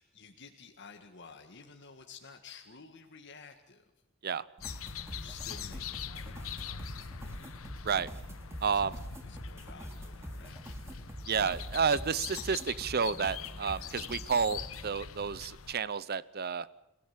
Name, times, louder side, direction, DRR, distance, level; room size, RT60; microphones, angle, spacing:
voice 1, 0.0-3.8 5.1-7.5 8.7-10.8, left 5 dB, 60° left, 4 dB, 1.9 m, -53 dB
sound 1, 4.6-15.7, left 7 dB, 85° left, 1.1 m, -43 dB
sound 2, 4.6-14.9, equal, 15° right, 3.2 m, -46 dB
voice 2, 8.6-8.9 11.3-16.7, right 6 dB, 50° right, 18 dB, 0.7 m, -31 dB
30.0 x 17.0 x 7.4 m, 0.97 s
head